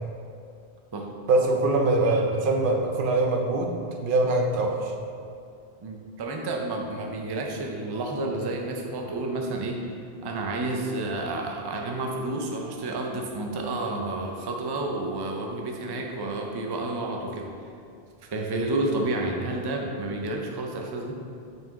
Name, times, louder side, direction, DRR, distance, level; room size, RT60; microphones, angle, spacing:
voice 1, 1.3-3.7 4.0-4.9, right 2 dB, 55° right, 2 dB, 0.8 m, -23 dB
voice 2, 5.8-9.8 10.2-17.5 18.3-21.2, right 2 dB, 30° right, 1 dB, 0.4 m, -30 dB
5.8 x 4.5 x 3.5 m, 2.5 s
omnidirectional pair, 1.1 m